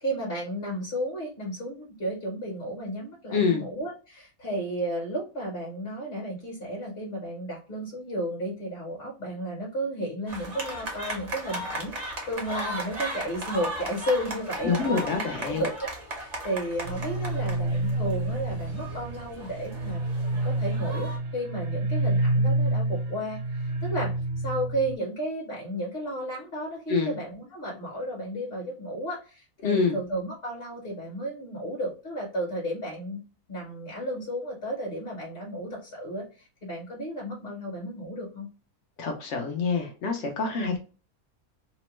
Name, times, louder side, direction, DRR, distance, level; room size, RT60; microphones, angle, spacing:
voice 1, 0.0-20.0 20.4-24.1 24.4-33.2 33.5-38.5 40.6-40.8, right 1 dB, 45° left, -3 dB, 1.1 m, -33 dB
voice 2, 3.3-3.6 14.6-15.7 26.9-27.1 29.6-30.0 39.0-40.8, left 4 dB, 65° left, 3 dB, 0.8 m, -26 dB
sound 1, 10.3-21.2, right 1 dB, 40° right, 0.7 m, -37 dB
sound 2, 16.8-25.0, right 2 dB, 90° right, 1.1 m, -28 dB
2.9 x 2.1 x 3.0 m, 0.34 s
omnidirectional pair, 1.6 m